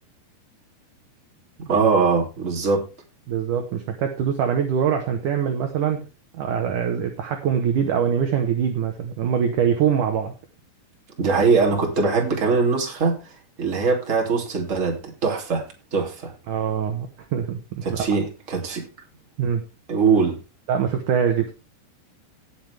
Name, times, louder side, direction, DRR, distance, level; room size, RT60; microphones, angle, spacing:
voice 1, 1.7-2.8 11.2-13.3 13.6-16.3 17.8-18.9 19.9-20.4, right 4 dB, 20° right, 2.6 m, -22 dB
voice 2, 3.3-6.0 6.3-10.3 16.5-18.1 19.4-19.6 20.7-21.5, right 8 dB, 65° right, 2.3 m, -23 dB
17.5 x 7.5 x 3.5 m
omnidirectional pair, 4.9 m